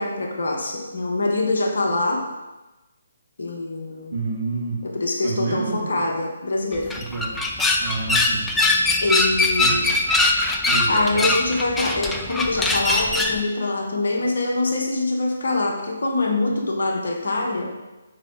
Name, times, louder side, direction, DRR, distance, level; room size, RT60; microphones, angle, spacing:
voice 1, 0.0-2.2 3.4-4.2 4.8-6.9 9.0-9.9 10.9-17.7, left 2 dB, 60° left, 1 dB, 1.2 m, -24 dB
voice 2, 4.1-4.8 5.2-6.0 7.0-7.3 7.8-8.5 9.6-9.9 10.7-11.3, right 4 dB, 40° right, -5 dB, 2.0 m, -28 dB
sound 1, 6.7-13.4, left 2 dB, 5° left, 0.4 m, -21 dB
7.2 x 4.8 x 3.7 m, 1.1 s
figure-of-eight pair, 140°, 0 cm